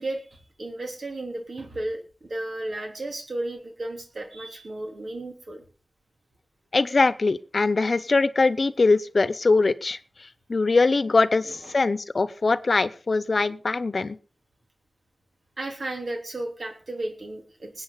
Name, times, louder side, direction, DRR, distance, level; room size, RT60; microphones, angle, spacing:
voice 1, 0.0-5.6 15.6-17.8, right 1 dB, 80° right, 3 dB, 3.3 m, -34 dB
voice 2, 6.7-10.0 10.5-14.2, left 3 dB, 75° left, 16 dB, 0.8 m, -22 dB
21.0 x 8.7 x 4.0 m, 0.36 s
cardioid pair, 45°, 0 cm